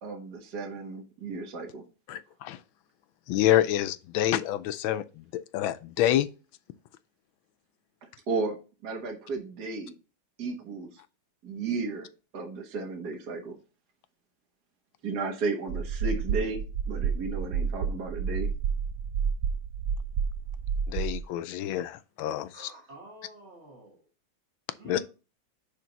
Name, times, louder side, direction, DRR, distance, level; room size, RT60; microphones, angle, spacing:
voice 1, 0.0-1.8 8.3-9.9 10.4-10.9 11.4-12.1 12.3-13.6 15.0-16.6 16.9-18.5, right 3 dB, 55° right, 1.9 m, -34 dB
voice 2, 2.1-2.6 3.3-6.3 20.9-22.7 24.8-25.0, left 12 dB, 80° left, 1.4 m, -27 dB
sound 1, 15.7-21.2, right 6 dB, 85° right, 0.7 m, -30 dB
voice 3, 22.5-24.1 24.8-25.0, right 2 dB, 35° right, 1.8 m, -48 dB
10.0 x 3.6 x 4.0 m
omnidirectional pair, 2.2 m